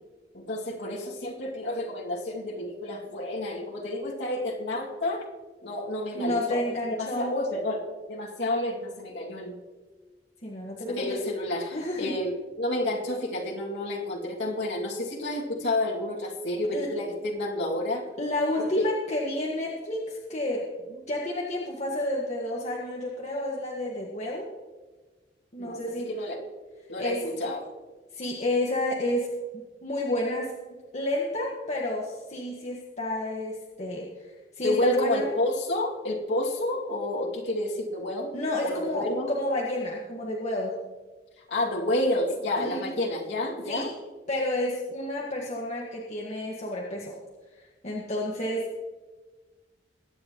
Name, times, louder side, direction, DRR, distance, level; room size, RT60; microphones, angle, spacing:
voice 1, 0.3-5.2 5.6-6.7 7.0-9.6 10.9-18.0 18.8-18.9 25.6-25.8 26.1-26.4 26.9-27.6 34.6-38.3 38.6-39.3 41.5-43.9, left 1 dB, 80° left, -3 dB, 2.4 m, -30 dB
voice 2, 6.1-7.3 10.4-11.2 11.7-12.1 16.7-16.9 18.2-20.7 21.1-24.5 25.5-26.1 27.0-27.2 28.1-30.5 30.9-34.1 34.5-35.3 38.3-40.8 42.6-42.9 43.7-43.9 44.3-47.2 47.8-48.7, left 1 dB, 40° left, -3 dB, 1.7 m, -30 dB
22.0 x 9.6 x 3.1 m, 1.3 s
head